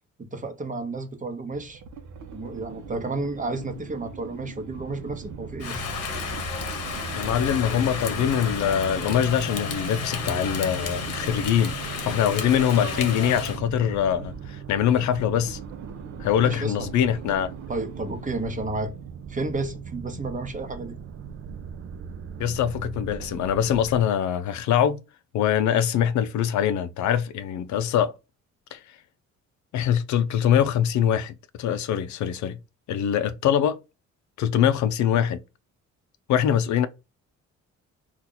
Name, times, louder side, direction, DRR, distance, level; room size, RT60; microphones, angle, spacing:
voice 1, 0.3-1.8 2.3-5.9 16.4-16.9 17.7-18.9 19.3-20.9, right 2 dB, 25° right, 0.9 m, -32 dB
sound 1, 1.6-19.1, right 5 dB, 75° right, 0.8 m, -43 dB
sound 2, 4.7-24.0, right 7 dB, 45° right, 0.5 m, -39 dB
Rain, 5.6-13.6, left 6 dB, 55° left, 0.9 m, -32 dB
voice 2, 7.1-11.7 12.0-15.6 16.2-17.5 22.4-25.0 25.3-28.1 28.7-28.8 29.7-32.6 32.9-33.8 34.4-35.4 36.3-36.9, left 9 dB, 70° left, 0.5 m, -23 dB
2.8 x 2.4 x 3.7 m
cardioid pair, 90°, 30 cm